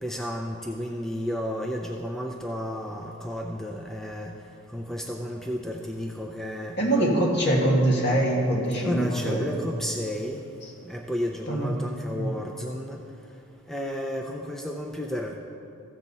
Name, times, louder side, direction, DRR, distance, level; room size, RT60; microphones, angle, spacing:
voice 1, 0.0-4.3 4.7-6.8 8.8-10.4 10.8-13.0 13.7-15.4, equal, ahead, 0 dB, 0.4 m, -32 dB
voice 2, 6.8-9.4 11.5-11.7 12.1-12.3, right 1 dB, 50° left, -2 dB, 1.8 m, -23 dB
15.0 x 7.2 x 4.2 m, 2.6 s
head